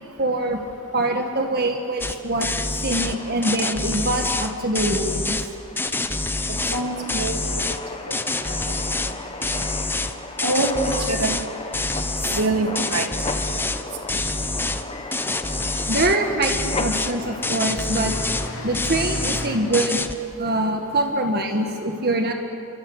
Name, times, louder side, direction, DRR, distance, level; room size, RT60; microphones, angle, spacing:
voice 1, 0.2-0.6 0.9-5.5 11.9-12.1 15.9-18.1 18.6-20.1 20.4-22.3, right 1 dB, 45° right, 4 dB, 1.6 m, -24 dB
sound 1, 2.0-2.2 2.4-3.2 3.4-5.5 5.8-6.8 7.1-7.8 8.1-9.1 9.4-11.5 11.7-12.5 12.8-13.8 14.1-14.8 15.1-16.2 16.4-17.1 17.4-18.5 18.7-19.5 19.7-20.2, left 2 dB, 10° left, 0.9 m, -26 dB
sound 2, 3.0-19.9, left 3 dB, 25° left, 1.5 m, -36 dB
voice 2, 6.7-7.7 8.1-8.2 8.5-8.6 10.4-11.3 12.3-13.1, right 2 dB, 85° right, 3 dB, 2.4 m, -24 dB
sound 3, 14.2-15.0 15.9-16.0 16.3-19.6, left 1 dB, 65° left, 5.3 m, -36 dB
29.0 x 24.0 x 8.1 m, 2.7 s
head